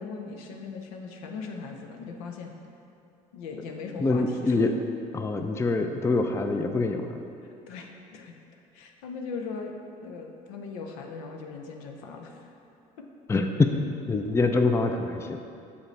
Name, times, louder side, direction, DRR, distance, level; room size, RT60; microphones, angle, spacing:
voice 1, 0.0-2.5 3.3-4.6 7.7-8.4 8.7-9.7 10.0-12.5, left 4 dB, 75° left, 2 dB, 0.6 m, -39 dB
voice 2, 4.0-4.7 5.1-7.2 13.3-13.8 14.1-15.4, left 3 dB, 15° left, 5 dB, 0.4 m, -25 dB
6.8 x 4.9 x 3.2 m, 2.6 s
hypercardioid pair, 65°, 18 cm